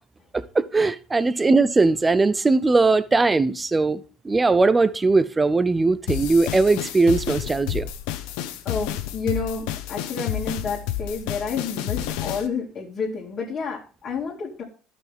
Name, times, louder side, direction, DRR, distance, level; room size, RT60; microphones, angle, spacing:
voice 1, 0.3-7.9, right 3 dB, 15° right, 0.6 m, -20 dB
sound 1, 6.1-12.5, left 12 dB, 80° left, 0.9 m, -30 dB
voice 2, 8.6-14.6, left 5 dB, 35° left, 2.3 m, -30 dB
12.0 x 5.9 x 3.5 m
cardioid pair, 120°, 0 cm